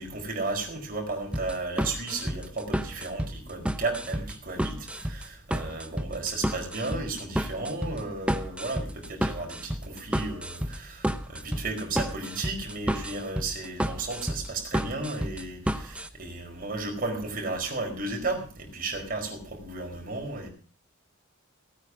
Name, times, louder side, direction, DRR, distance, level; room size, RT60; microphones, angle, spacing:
voice 1, 0.0-20.5, right 3 dB, 40° right, 2 dB, 4.8 m, -34 dB
sound 1, 1.3-16.1, equal, 5° right, 0.8 m, -31 dB
17.5 x 9.1 x 6.1 m, 0.39 s
head